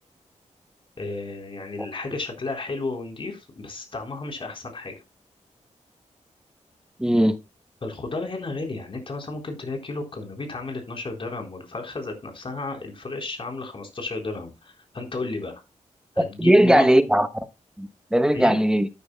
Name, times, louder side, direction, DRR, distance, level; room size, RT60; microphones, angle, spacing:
voice 1, 1.0-4.9 7.8-15.6 16.1-16.9 18.3-18.6, left 3 dB, 45° left, 4.0 m, -33 dB
voice 2, 7.0-7.4 16.4-17.3 17.8-18.9, right 1 dB, 5° right, 1.0 m, -18 dB
13.5 x 9.5 x 2.3 m
wide cardioid pair, 115°, 13 cm